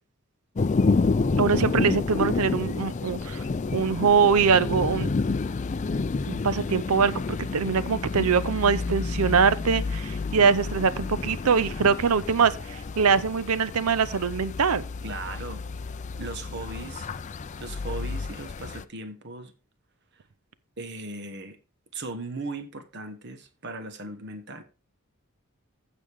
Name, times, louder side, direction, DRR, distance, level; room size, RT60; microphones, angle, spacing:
sound 1, 0.6-18.8, left 3 dB, 35° left, 0.4 m, -29 dB
voice 1, 1.4-3.4 3.7-5.1 6.3-14.8, right 6 dB, 85° right, 0.6 m, -23 dB
voice 2, 15.0-15.6 16.2-17.1 17.6-19.5 20.8-21.6 21.9-24.6, right 2 dB, 50° right, 1.2 m, -37 dB
15.0 x 5.2 x 3.5 m
head